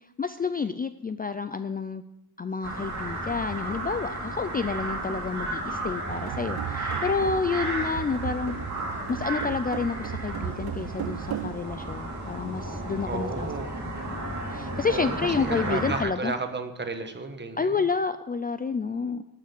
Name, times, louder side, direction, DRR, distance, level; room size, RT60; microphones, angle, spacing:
voice 1, 0.2-2.0 2.4-8.6 9.1-13.5 13.8-16.3 17.6-19.2, left 5 dB, 25° left, 11 dB, 0.4 m, -29 dB
sound 1, 2.6-16.0, right 2 dB, 45° right, 3.2 m, -33 dB
sound 2, 6.1-11.6, right 11 dB, 80° right, 0.6 m, -36 dB
voice 2, 13.0-13.7 14.9-17.8, right 3 dB, 30° right, 6 dB, 1.2 m, -33 dB
12.0 x 6.7 x 7.7 m, 0.94 s
wide cardioid pair, 145°, 38 cm